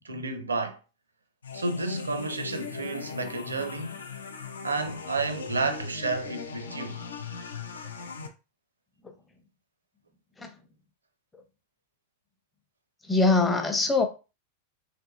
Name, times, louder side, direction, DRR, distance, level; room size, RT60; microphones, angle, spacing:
voice 1, 0.0-0.8 1.5-4.0 4.6-7.0, right 3 dB, 75° right, 0.5 m, -31 dB
sound 1, 1.4-8.3, left 5 dB, 70° left, 0.5 m, -39 dB
voice 2, 13.1-14.1, left 3 dB, 10° left, 0.7 m, -22 dB
3.5 x 3.1 x 2.3 m
figure-of-eight pair, 90°, 0 cm